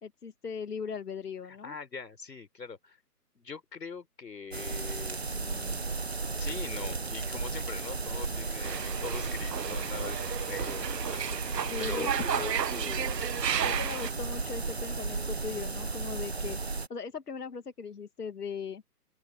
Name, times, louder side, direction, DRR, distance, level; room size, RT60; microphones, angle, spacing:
voice 1, 0.0-1.8 11.7-12.5 13.6-16.6 16.9-18.8, left 5 dB, 70° left, 1.9 m, -39 dB
voice 2, 1.5-3.0 3.3-5.9 6.3-13.8, left 5 dB, 85° left, 4.6 m, -43 dB
sound 1, 4.5-16.9, right 3 dB, 40° right, 0.6 m, -34 dB
sound 2, 8.6-14.1, right 9 dB, 85° right, 0.8 m, -33 dB
open air
hypercardioid pair, 180°, 48 cm